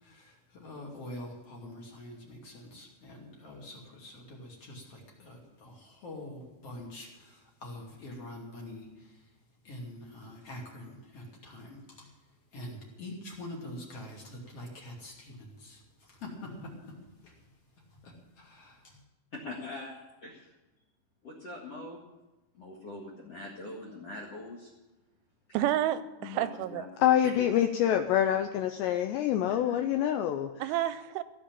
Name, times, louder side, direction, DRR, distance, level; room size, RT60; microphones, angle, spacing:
voice 1, 0.0-9.2 9.6-12.1 12.5-17.0 17.2-17.3 18.0-19.0, left 1 dB, 35° left, -1 dB, 2.9 m, -45 dB
voice 2, 19.3-20.5 21.2-22.0 22.5-24.7 25.5-25.6 26.2-26.8 27.2-27.6 29.5-29.8, left 2 dB, 55° left, 1 dB, 1.8 m, -43 dB
voice 3, 25.5-26.8 30.6-31.2, right 13 dB, 85° right, 13 dB, 2.9 m, -30 dB
voice 4, 27.0-30.5, left 10 dB, 85° left, 7 dB, 2.5 m, -26 dB
16.5 x 7.4 x 8.8 m, 1.1 s
omnidirectional pair, 5.6 m